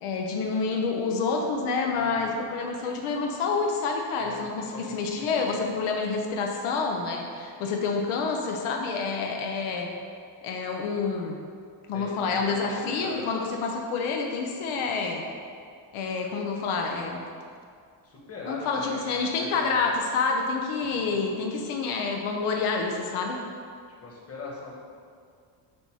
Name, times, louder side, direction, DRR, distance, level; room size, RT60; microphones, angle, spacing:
voice 1, 0.0-9.9 10.4-11.4 11.9-15.3 15.9-17.3 18.5-23.4, left 4 dB, 90° left, 2 dB, 0.8 m, -28 dB
voice 2, 1.9-2.4 4.2-5.7 11.9-13.3 18.0-19.9 20.8-21.3 24.0-24.7, left 3 dB, 30° left, -2 dB, 1.2 m, -41 dB
7.9 x 2.8 x 4.6 m, 2.2 s
cardioid pair, 120°, 48 cm